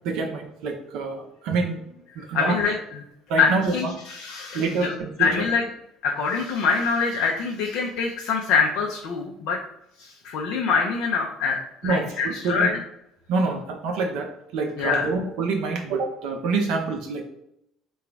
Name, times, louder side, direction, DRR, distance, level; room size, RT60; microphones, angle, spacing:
voice 1, 0.0-1.8 2.2-2.6 3.3-3.7 4.5-5.5 11.8-12.7 13.3-14.3 14.5-17.2, right 4 dB, 60° right, 2 dB, 0.5 m, -26 dB
voice 2, 2.3-2.7 3.4-4.9 5.2-5.6 6.0-9.6 10.0-12.8 14.8-15.1, left 5 dB, 55° left, 0 dB, 0.5 m, -24 dB
3.8 x 2.3 x 4.5 m, 0.77 s
figure-of-eight pair, 55°, 0 cm